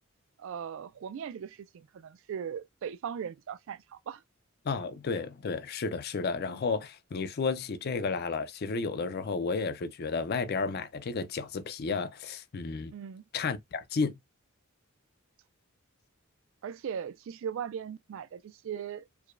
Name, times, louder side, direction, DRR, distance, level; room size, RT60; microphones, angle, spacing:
voice 1, 0.4-4.2 12.9-13.2 16.6-19.1, right 8 dB, 60° right, 0.3 m, -39 dB
voice 2, 4.6-12.9 13.3-14.1, left 4 dB, 45° left, 0.4 m, -32 dB
4.7 x 2.2 x 2.4 m
head